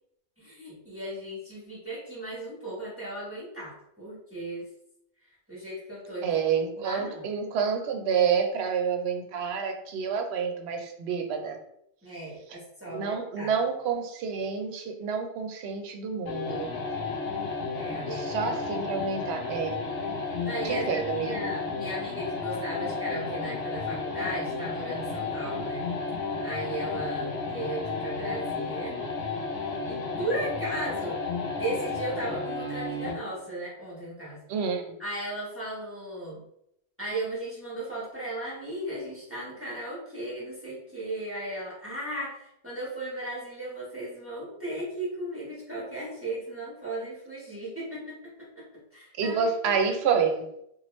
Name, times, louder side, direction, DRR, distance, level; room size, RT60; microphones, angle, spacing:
voice 1, 0.4-4.6 5.5-6.2 6.8-7.2 12.0-13.5 17.7-18.3 20.4-25.9 26.4-29.0 29.9-31.2 31.6-34.4 35.0-36.4 37.0-48.1 48.5-48.6 48.9-49.8, right 1 dB, 10° right, -7 dB, 1.0 m, -36 dB
voice 2, 6.2-11.6 12.9-16.7 18.1-19.8 20.6-21.5 34.5-34.9 49.2-50.4, right 6 dB, 70° right, 4 dB, 0.8 m, -28 dB
sound 1, 16.3-33.3, left 4 dB, 75° left, 0.9 m, -32 dB
3.0 x 2.2 x 3.0 m, 0.76 s
omnidirectional pair, 1.2 m